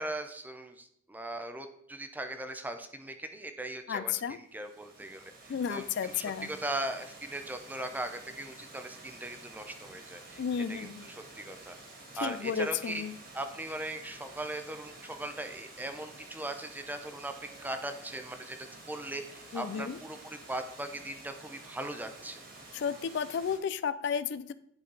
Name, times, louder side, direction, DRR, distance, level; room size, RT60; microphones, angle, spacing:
voice 1, 0.0-10.4 10.7-11.8 12.2-13.0 13.3-17.3 17.6-18.6 18.9-22.4, right 1 dB, 10° right, 7 dB, 0.6 m, -39 dB
voice 2, 3.9-4.4 5.5-6.5 10.4-11.1 12.2-13.1 19.5-20.0 22.7-24.5, left 7 dB, 60° left, 15 dB, 0.3 m, -32 dB
Water, 4.5-23.6, right 2 dB, 50° right, 2.1 m, -50 dB
10.5 x 4.3 x 4.0 m, 0.71 s
head